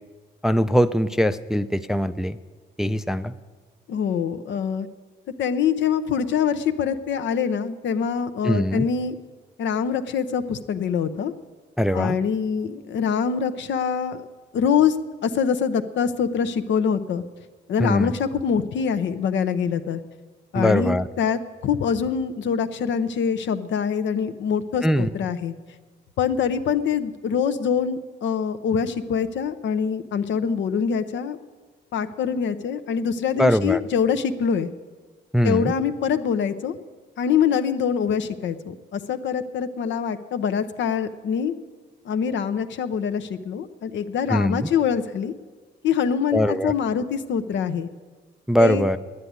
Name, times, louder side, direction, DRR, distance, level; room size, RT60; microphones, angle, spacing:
voice 1, 0.4-2.4 2.8-3.3 8.4-8.9 11.8-12.2 17.8-18.1 20.5-21.1 24.8-25.1 33.4-33.8 35.3-35.7 44.3-44.7 46.3-46.7 48.5-49.0, equal, ahead, 11 dB, 0.4 m, -21 dB
voice 2, 3.9-4.9 5.4-9.2 9.6-11.3 11.9-14.3 14.5-15.0 15.2-17.2 17.7-20.0 20.5-25.5 26.2-31.4 31.9-34.7 35.4-36.8 37.2-41.5 42.0-45.3 45.8-47.9 48.6-48.9, left 7 dB, 70° left, 10 dB, 0.8 m, -24 dB
10.0 x 9.8 x 9.5 m, 1.4 s
cardioid pair, 90°, 20 cm